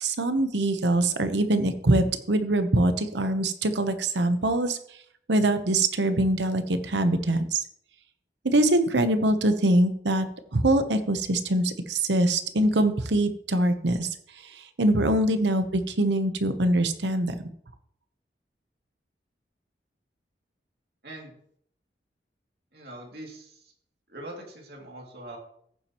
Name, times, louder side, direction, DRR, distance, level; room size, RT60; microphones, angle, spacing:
voice 1, 0.0-4.8 5.3-7.6 8.4-10.3 10.5-14.1 14.4-17.3, right 1 dB, 85° right, 9 dB, 0.9 m, -23 dB
voice 2, 22.7-23.7 24.1-25.4, right 1 dB, 65° right, -1 dB, 2.6 m, -42 dB
14.5 x 7.4 x 3.0 m, 0.65 s
head